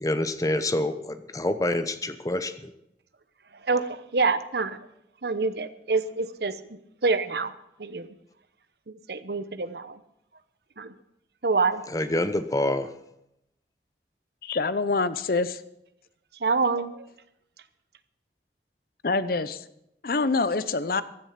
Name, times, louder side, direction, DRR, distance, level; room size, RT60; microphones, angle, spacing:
voice 1, 0.0-2.7 11.9-12.9, left 1 dB, 20° left, 11 dB, 0.8 m, -27 dB
voice 2, 3.7-4.8 5.2-6.6 7.0-7.5 7.8-8.1 8.9-10.0 10.8-10.9 11.4-11.8 16.4-17.0, right 4 dB, 65° right, 12 dB, 0.9 m, -26 dB
voice 3, 14.4-15.6 19.0-19.6 20.0-21.0, left 3 dB, 55° left, 14 dB, 0.7 m, -25 dB
15.5 x 10.5 x 5.8 m, 0.80 s
head